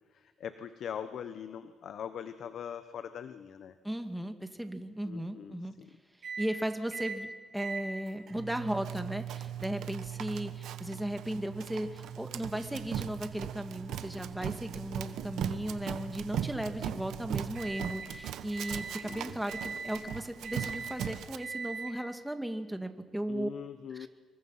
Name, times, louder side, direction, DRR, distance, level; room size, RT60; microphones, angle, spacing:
voice 1, 0.1-3.8 5.0-5.9 18.9-19.4 23.3-24.1, left 8 dB, 65° left, 11 dB, 1.1 m, -42 dB
voice 2, 3.8-5.7 6.4-7.3 7.5-23.5 23.9-24.1, right 1 dB, 5° right, 7 dB, 2.1 m, -36 dB
sound 1, 6.2-6.5 6.9-7.2 7.6-18.1 18.5-19.1 19.5-20.0 20.4-21.0 21.4-21.9, right 7 dB, 55° right, 6.4 m, -42 dB
Run, 8.8-21.4, right 10 dB, 80° right, 1.2 m, -40 dB
27.0 x 23.0 x 5.8 m, 1.5 s
cardioid pair, 90°, 0 cm